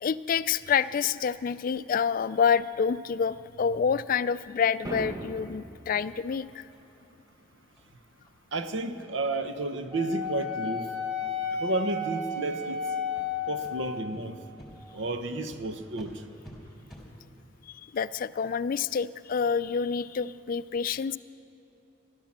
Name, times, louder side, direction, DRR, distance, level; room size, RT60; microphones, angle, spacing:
voice 1, 0.0-6.7 17.7-21.2, left 6 dB, 50° left, 16 dB, 0.3 m, -28 dB
sound 1, 4.8-5.9, right 1 dB, 20° right, 0.9 m, -37 dB
sound 2, 6.7-6.8 7.3-7.4 7.7-7.9 8.2-8.3 8.7-8.8 9.2-9.4 9.7-9.8 10.2-10.3 10.7-10.8 11.2-11.5 12.1-12.3 12.6-12.8 13.1-13.3 13.6-13.7 14.1-14.2 14.6-14.7 15.0-15.2 15.5-15.6 15.9-16.1 16.4-16.5 16.9-17.0, equal, ahead, 3.5 m, -52 dB
voice 2, 8.5-10.9 11.6-12.8 13.5-14.4 14.9-16.1, right 2 dB, 80° right, 9 dB, 0.9 m, -31 dB
Wind instrument woodwind instrument, 9.9-14.1, left 4 dB, 60° right, 2.7 m, -32 dB
15.0 x 12.0 x 7.3 m, 2.9 s
head